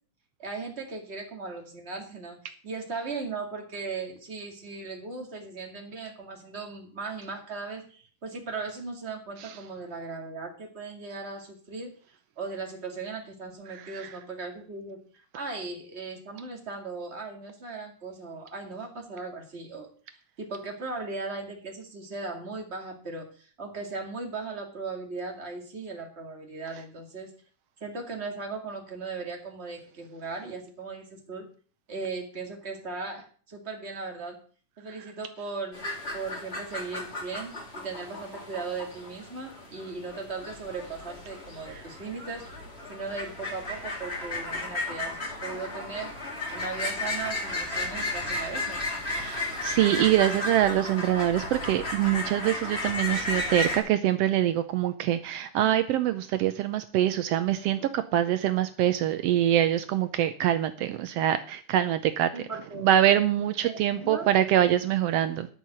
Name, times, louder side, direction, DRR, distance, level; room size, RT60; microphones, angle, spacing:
voice 1, 0.4-11.9 12.4-27.3 27.8-31.5 31.9-34.4 34.8-35.8 36.1-42.5 42.9-46.2 46.5-48.8 53.5-53.8 62.3-62.9 63.6-64.3, right 4 dB, 25° right, 1 dB, 2.1 m, -38 dB
sound 1, 35.7-53.8, left 2 dB, 20° left, 2.5 m, -34 dB
voice 2, 49.1-62.3 62.8-65.5, right 12 dB, 85° right, 10 dB, 1.4 m, -24 dB
11.0 x 5.7 x 8.9 m, 0.43 s
omnidirectional pair, 3.6 m